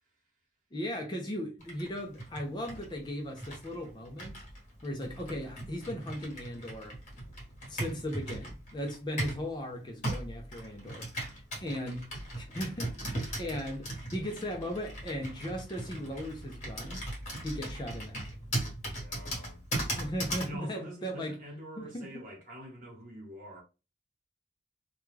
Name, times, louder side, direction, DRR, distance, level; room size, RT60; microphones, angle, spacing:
voice 1, 0.7-4.4 4.8-7.0 7.7-17.1 17.4-18.3 19.9-21.4 21.8-22.1, equal, 25° left, 0.5 m, -37 dB
Computer keyboard, 1.6-9.5 10.0-20.6, right 1 dB, 40° left, 1.0 m, -38 dB
voice 2, 18.9-19.6 20.4-23.6, equal, 45° right, 1.1 m, -45 dB
2.3 x 2.2 x 3.2 m
head